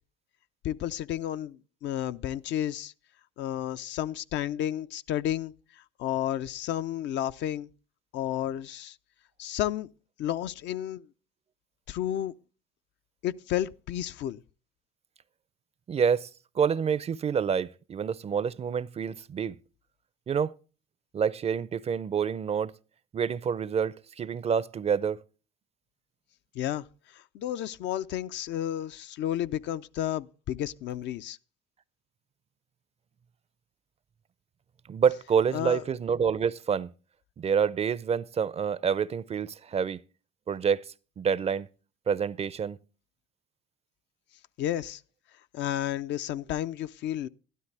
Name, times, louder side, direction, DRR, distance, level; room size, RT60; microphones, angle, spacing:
voice 1, 0.6-2.9 3.4-5.5 6.0-7.7 8.1-9.0 9.4-9.9 10.2-11.0 11.9-12.3 13.2-14.4 26.5-26.9 27.1-31.4 35.5-35.8 44.6-45.0 45.5-47.3, left 11 dB, 65° left, 0.5 m, -31 dB
voice 2, 15.9-16.3 16.6-19.5 20.3-20.5 21.1-22.7 23.1-25.2 34.9-36.9 37.4-40.0 40.5-40.8 41.2-41.7 42.1-42.8, right 7 dB, 30° right, 0.4 m, -27 dB
12.0 x 12.0 x 3.3 m
supercardioid pair, 80°, 20 cm